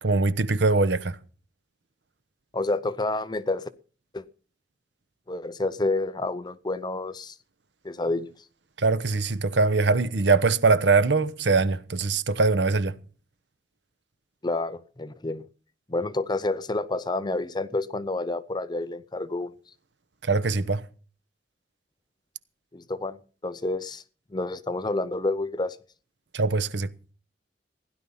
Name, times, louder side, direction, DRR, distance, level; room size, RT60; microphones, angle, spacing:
voice 1, 0.0-1.2 8.8-13.0 20.2-20.9 26.3-26.9, right 3 dB, 80° right, 0.9 m, -22 dB
voice 2, 2.5-3.7 4.1-4.2 5.3-7.4 7.8-8.3 14.4-15.4 15.9-19.5 22.7-24.0 24.3-25.8, left 2 dB, 25° left, 0.6 m, -29 dB
16.0 x 11.0 x 5.6 m
head